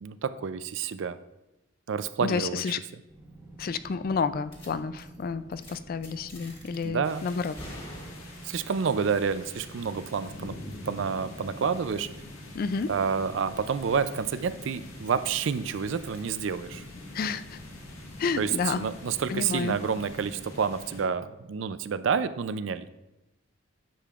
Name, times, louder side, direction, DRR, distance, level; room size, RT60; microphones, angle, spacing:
voice 1, 0.0-1.2 1.9-2.8 6.8-7.2 8.4-10.6 10.9-12.1 12.9-16.8 18.4-22.9, right 6 dB, 65° right, 13 dB, 0.4 m, -29 dB
voice 2, 2.2-2.8 3.6-7.5 12.5-12.9 17.1-17.6 18.2-18.9 19.3-19.8, left 5 dB, 45° left, 13 dB, 0.3 m, -30 dB
sound 1, 3.1-21.1, right 1 dB, 20° right, 1.2 m, -49 dB
sound 2, 4.5-4.7 5.0-5.2 5.5-5.7 6.0-6.8 7.3-8.6, equal, 25° left, 1.7 m, -45 dB
sound 3, 7.0-21.0, left 2 dB, 90° left, 1.6 m, -46 dB
10.0 x 7.5 x 2.4 m, 0.95 s
head